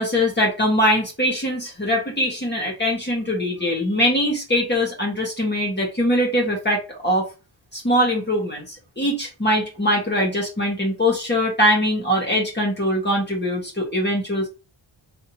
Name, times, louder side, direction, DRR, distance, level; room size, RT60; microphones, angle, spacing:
voice 1, 0.0-7.3 7.7-14.5, equal, 20° left, -2 dB, 1.8 m, -22 dB
3.8 x 3.5 x 2.9 m, 0.30 s
wide cardioid pair, 80°, 49 cm